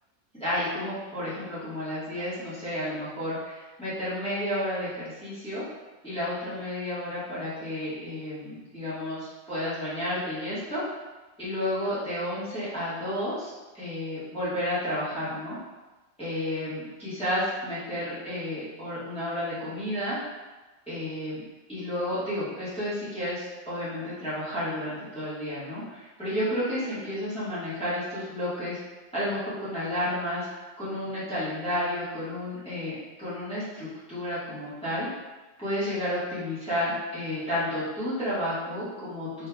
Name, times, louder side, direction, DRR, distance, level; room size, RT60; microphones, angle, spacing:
voice 1, 0.4-5.6 6.0-10.8 11.4-15.6 16.2-20.2 20.9-21.4 21.7-28.8 29.1-30.5 30.8-35.1 35.6-39.5, left 1 dB, 5° left, -13 dB, 1.3 m, -31 dB
3.5 x 3.2 x 2.3 m, 1.2 s
omnidirectional pair, 1.3 m